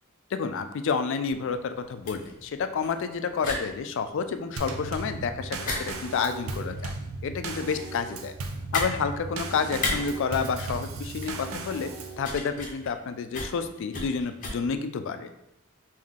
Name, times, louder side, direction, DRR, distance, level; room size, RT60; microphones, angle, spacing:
voice 1, 0.3-6.9 7.2-8.3 8.7-11.9 12.2-15.3, left 5 dB, 60° left, 9 dB, 0.3 m, -29 dB
sound 1, 1.4-14.5, left 2 dB, 40° left, 0.7 m, -37 dB
Drum kit / Snare drum / Bass drum, 4.6-12.2, right 3 dB, 80° right, 0.5 m, -36 dB
3.5 x 2.7 x 3.6 m, 0.82 s
head